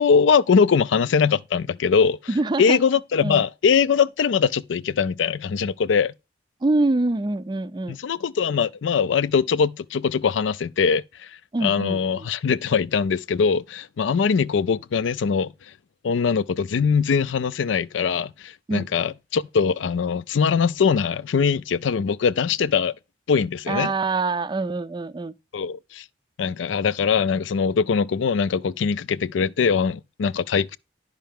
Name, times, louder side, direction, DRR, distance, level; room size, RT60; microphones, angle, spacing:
voice 1, 0.0-2.2 2.6-6.1 7.9-11.3 11.6-15.5 16.0-22.9 23.3-23.9 25.5-26.0 26.4-30.8, left 6 dB, 90° left, 0.4 m, -22 dB
voice 2, 2.3-2.8 3.2-3.4 6.6-8.0 11.5-12.3 18.7-18.9 23.7-25.3, right 2 dB, 25° right, 0.3 m, -25 dB
10.5 x 5.6 x 3.5 m
head